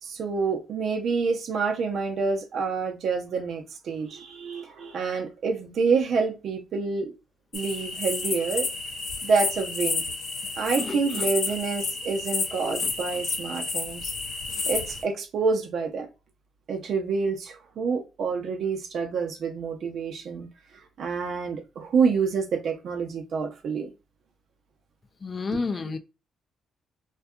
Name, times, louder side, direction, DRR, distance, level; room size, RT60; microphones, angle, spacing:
voice 1, 0.0-7.1 7.5-8.7 9.2-10.0 10.6-14.1 14.7-16.1 16.7-20.5 21.0-23.9 25.5-25.6, right 5 dB, 65° right, 0.6 m, -27 dB
sound 1, 7.5-15.0, left 4 dB, 65° left, 0.8 m, -31 dB
voice 2, 10.8-11.2 25.2-26.0, left 4 dB, 35° left, 0.3 m, -31 dB
2.7 x 2.2 x 2.3 m
cardioid pair, 90°, 0 cm